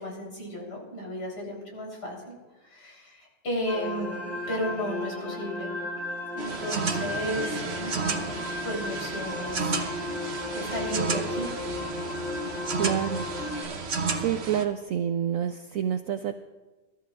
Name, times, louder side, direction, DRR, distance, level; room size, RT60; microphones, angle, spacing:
voice 1, 0.0-2.4 2.6-5.8 6.3-9.8 10.5-11.5, equal, 85° left, -2 dB, 4.4 m, -34 dB
sound 1, 3.6-13.6, left 2 dB, 50° left, 5.4 m, -35 dB
sound 2, 6.4-14.6, right 4 dB, 45° right, 1.1 m, -32 dB
voice 2, 12.8-13.3 13.8-16.4, right 9 dB, 65° right, 8 dB, 0.9 m, -28 dB
26.0 x 13.0 x 2.4 m, 1.2 s
omnidirectional pair, 1.7 m